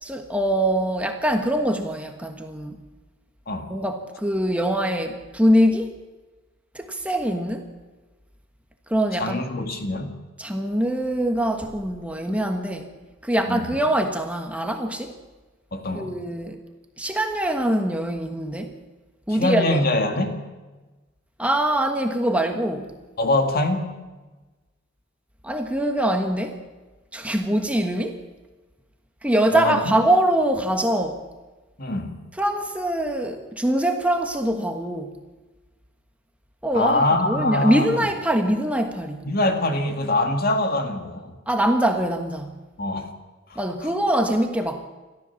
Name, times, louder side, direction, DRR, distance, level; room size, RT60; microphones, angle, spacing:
voice 1, 0.0-2.8 3.7-6.0 6.7-7.7 8.9-9.4 10.4-12.9 13.2-15.2 15.9-16.6 17.0-18.8 19.3-19.8 21.4-22.9 25.4-26.6 27.1-28.2 29.2-31.2 32.4-35.1 36.6-39.2 41.5-42.5 43.5-44.9, right 1 dB, 5° right, 4 dB, 1.3 m, -23 dB
voice 2, 9.2-10.2 13.5-13.6 15.7-16.1 19.3-20.4 23.2-23.9 29.5-29.9 31.8-32.2 36.7-38.0 39.3-41.3 42.8-43.1 43.5-43.6, left 2 dB, 50° left, 5 dB, 2.2 m, -24 dB
29.0 x 13.5 x 7.2 m, 1.2 s
head